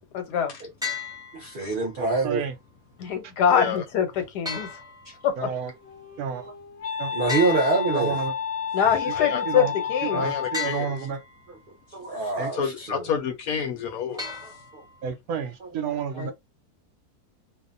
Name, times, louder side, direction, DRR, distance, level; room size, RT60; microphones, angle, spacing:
voice 1, 0.1-0.5 3.0-4.7 5.2-5.5 8.7-10.2 16.2-16.3, left 8 dB, 90° left, 1.3 m, -24 dB
sound 1, 0.8-1.8 4.4-5.5 7.3-8.5 10.5-11.5 14.2-15.1, left 6 dB, 5° right, 0.7 m, -35 dB
voice 2, 1.3-2.4 7.1-8.2 11.9-13.0 14.7-14.8, right 3 dB, 50° right, 0.7 m, -25 dB
voice 3, 2.0-2.6 5.4-5.7 6.2-6.5 7.0-7.1 7.9-8.3 9.1-9.2 9.5-9.7 10.0-11.2 12.4-12.5 15.0-16.3, right 7 dB, 75° right, 1.0 m, -30 dB
voice 4, 3.5-3.8 9.1-9.4 10.1-10.9 12.5-14.3, left 7 dB, 70° left, 1.0 m, -29 dB
Wind instrument woodwind instrument, 5.6-10.9, left 7 dB, 55° left, 0.8 m, -31 dB
2.7 x 2.1 x 2.5 m
omnidirectional pair, 1.7 m